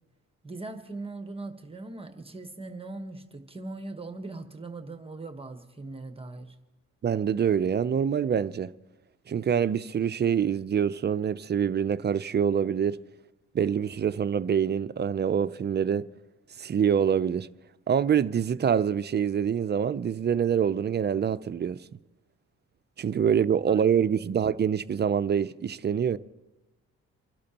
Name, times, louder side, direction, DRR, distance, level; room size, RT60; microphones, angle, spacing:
voice 1, 0.4-6.6 23.7-23.8, right 2 dB, 20° right, 1.2 m, -40 dB
voice 2, 7.0-8.7 9.3-13.0 13.5-16.1 16.6-17.5 17.9-21.8 23.0-26.2, right 8 dB, 35° right, 0.5 m, -25 dB
29.0 x 12.0 x 2.9 m
cardioid pair, 90°, 30 cm